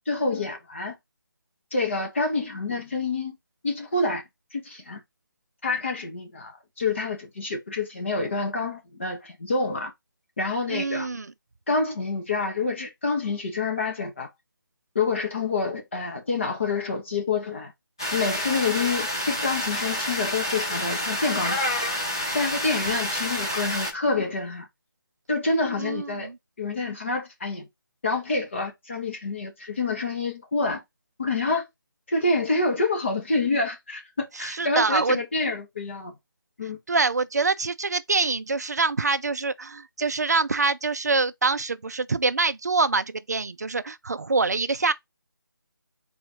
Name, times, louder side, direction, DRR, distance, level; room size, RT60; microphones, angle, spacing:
voice 1, 0.1-0.9 1.7-3.4 3.6-4.2 4.5-5.0 5.6-9.9 10.4-11.1 11.7-14.3 14.9-17.7 18.1-21.6 22.3-24.7 25.3-26.3 26.6-27.7 28.0-30.8 31.2-31.6 32.1-36.1 36.6-36.8, left 3 dB, 35° left, 1.2 m, -27 dB
voice 2, 10.7-11.3 25.8-26.4 34.4-35.2 36.9-44.9, right 4 dB, 50° right, 0.5 m, -25 dB
sound 1, 18.0-23.9, equal, 10° left, 0.5 m, -28 dB
4.2 x 2.6 x 4.4 m
figure-of-eight pair, 175°, 12 cm